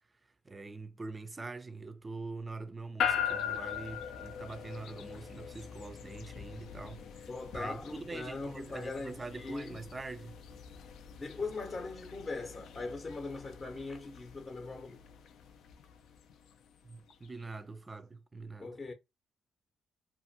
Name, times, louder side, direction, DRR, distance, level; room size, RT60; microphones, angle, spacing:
voice 1, 0.5-7.3 7.5-10.4 16.8-18.7, right 3 dB, 25° right, 0.4 m, -44 dB
sound 1, 3.0-17.3, left 8 dB, 75° left, 0.4 m, -41 dB
voice 2, 7.3-9.8 11.2-15.0 18.6-18.9, left 3 dB, 35° left, 0.7 m, -40 dB
2.5 x 2.4 x 2.6 m
cardioid pair, 90°, 0 cm